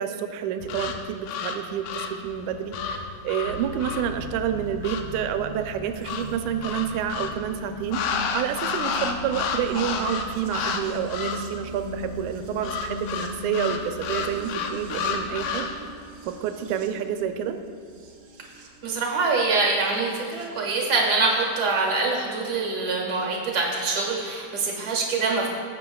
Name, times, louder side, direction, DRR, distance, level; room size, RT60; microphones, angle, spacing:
voice 1, 0.0-3.0 3.2-8.1 8.3-15.7 16.3-17.6, right 9 dB, 90° right, 8 dB, 2.0 m, -29 dB
sound 1, 0.6-5.2 6.0-7.4 7.9-10.8 11.1-11.6 12.6-15.9, left 5 dB, 85° left, 2.1 m, -31 dB
sound 2, 3.4-20.5 21.6-21.7, left 1 dB, 70° right, 1.4 m, -39 dB
voice 2, 18.8-25.5, right 3 dB, 40° right, -1 dB, 1.7 m, -24 dB
17.0 x 7.6 x 2.3 m, 2.3 s
omnidirectional pair, 3.3 m